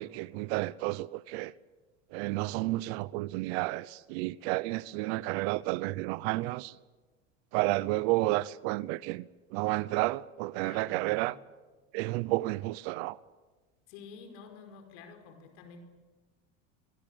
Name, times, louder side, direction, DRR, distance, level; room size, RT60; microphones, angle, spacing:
voice 1, 0.0-1.5 2.1-6.7 7.5-9.3 9.5-11.3 11.9-13.2, right 19 dB, 70° right, 0.8 m, -31 dB
voice 2, 10.6-11.2 13.9-15.8, left 5 dB, 75° left, 5.1 m, -49 dB
26.5 x 22.0 x 8.8 m
supercardioid pair, 135°, 33 cm